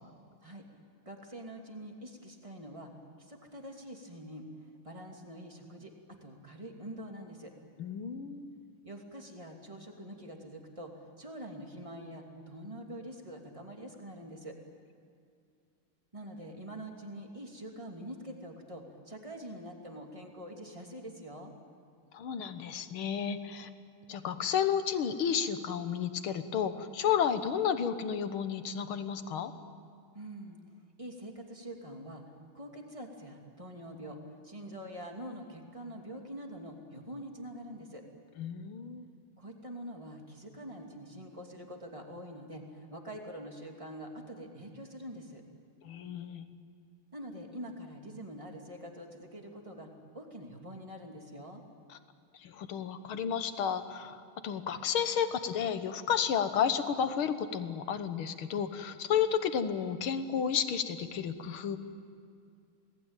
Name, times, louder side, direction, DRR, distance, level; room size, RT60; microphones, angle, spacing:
voice 1, 1.0-2.9 3.2-7.5 8.8-14.6 16.1-21.5 30.1-30.6 31.0-32.2 32.5-34.2 34.4-38.0 39.4-45.4 47.1-51.6, equal, 15° right, 2 dB, 2.8 m, -45 dB
voice 2, 7.8-8.6 22.1-23.7 24.1-29.5 38.4-39.1 45.8-46.5 51.9-52.0 52.3-54.2 54.4-61.8, left 8 dB, 80° left, 10 dB, 2.1 m, -32 dB
27.5 x 19.0 x 9.1 m, 2.3 s
omnidirectional pair, 2.3 m